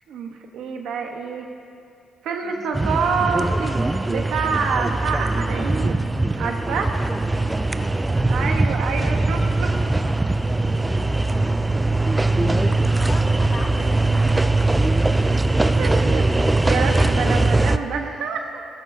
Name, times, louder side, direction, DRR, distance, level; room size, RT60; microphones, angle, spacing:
voice 1, 0.1-1.5 2.2-6.9 8.3-9.9 13.8-13.9 15.8-18.6, right 5 dB, 80° right, 3 dB, 1.2 m, -27 dB
voice 2, 2.4-2.9 7.1-9.1 10.4-15.2 15.5-15.8, left 2 dB, 40° left, 0 dB, 1.8 m, -41 dB
sound 1, 2.7-17.8, right 2 dB, 15° right, 0.4 m, -21 dB
sound 2, 12.4-16.0, left 7 dB, 60° left, 0.5 m, -39 dB
16.0 x 15.0 x 2.8 m, 2.5 s
cardioid pair, 90°, 0 cm